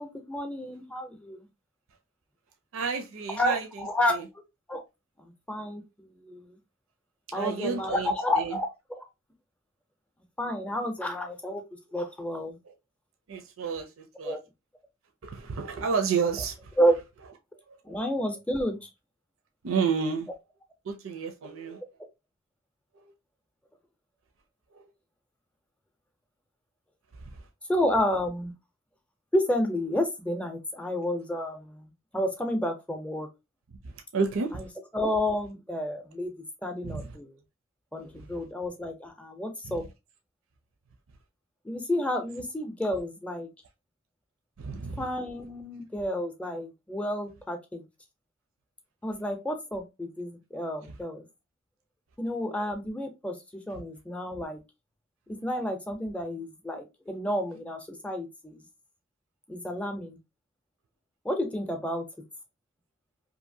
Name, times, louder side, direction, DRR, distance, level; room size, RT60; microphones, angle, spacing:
voice 1, 0.0-1.5 3.4-4.1 4.7-4.8 5.2-6.6 7.3-8.7 10.4-11.6 11.9-12.6 14.2-14.4 16.8-16.9 17.8-18.9 27.7-28.5 29.3-33.3 34.5-34.7 34.9-36.3 36.6-37.4 37.9-39.8 41.6-43.5 45.0-47.8 49.0-51.3 52.2-54.6 55.3-58.6 59.5-60.2 61.2-62.0, left 1 dB, 5° left, 0.5 m, -30 dB
voice 2, 2.7-4.2 7.3-8.6 12.7-12.8 13.3-14.4 15.2-16.7 17.7-17.8 19.6-20.3 20.8-21.8 23.0-23.1 24.7-24.8 27.2-27.4 33.8-34.7 36.8-37.2 38.1-38.3 39.6-39.8 44.6-45.1 53.7-53.8, right 5 dB, 85° right, 0.5 m, -31 dB
2.7 x 2.5 x 2.6 m
head